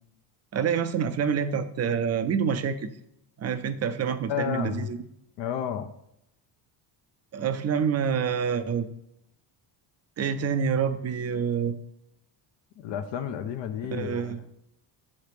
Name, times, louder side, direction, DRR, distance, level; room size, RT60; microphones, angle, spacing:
voice 1, 0.5-2.9 3.4-5.0 7.3-8.9 10.2-11.8 13.9-14.4, right 7 dB, 35° right, 11 dB, 0.4 m, -27 dB
voice 2, 4.3-4.9 5.4-5.9 12.8-14.5, left 9 dB, 70° left, 8 dB, 0.6 m, -32 dB
7.3 x 3.2 x 4.9 m, 0.80 s
cardioid pair, 110°, 45 cm